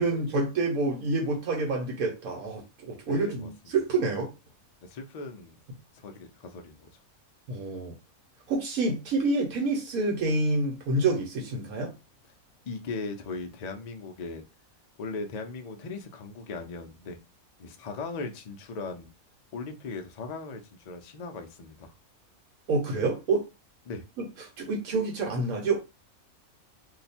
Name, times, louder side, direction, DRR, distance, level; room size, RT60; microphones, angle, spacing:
voice 1, 0.0-4.3 7.5-7.9 8.5-11.9 22.7-23.4 24.6-25.8, right 3 dB, 85° right, 1.3 m, -27 dB
voice 2, 3.1-3.8 4.8-5.6 5.9-6.9 12.7-14.4 15.0-17.2 17.6-19.1 19.5-21.9 23.9-24.0, left 3 dB, 75° left, 0.3 m, -38 dB
2.7 x 2.2 x 4.1 m
omnidirectional pair, 1.5 m